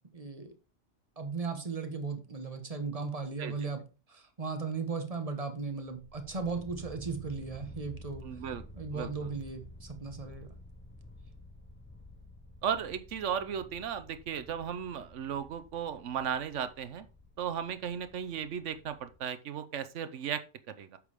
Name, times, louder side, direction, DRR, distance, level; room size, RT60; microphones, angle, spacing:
voice 1, 0.1-0.5 1.2-3.8 4.1-8.4 8.7-10.5, right 4 dB, 30° right, 1.3 m, -37 dB
sound 1, 5.8-19.2, equal, 10° left, 0.6 m, -51 dB
voice 2, 8.2-8.6 8.9-9.3 12.6-17.1 17.4-21.0, right 8 dB, 85° right, 1.1 m, -36 dB
8.2 x 6.7 x 3.5 m
omnidirectional pair, 1.2 m